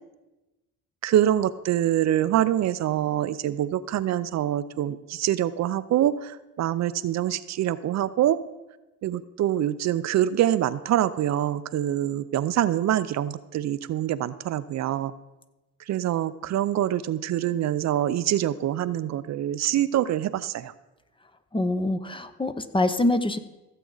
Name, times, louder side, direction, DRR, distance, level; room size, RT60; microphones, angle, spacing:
voice 1, 1.0-8.4 9.0-15.1 15.9-20.7, right 12 dB, 65° right, 14 dB, 0.5 m, -25 dB
voice 2, 21.5-23.4, left 2 dB, 15° left, 10 dB, 0.7 m, -25 dB
15.5 x 7.6 x 3.9 m, 1.1 s
cardioid pair, 90°, 30 cm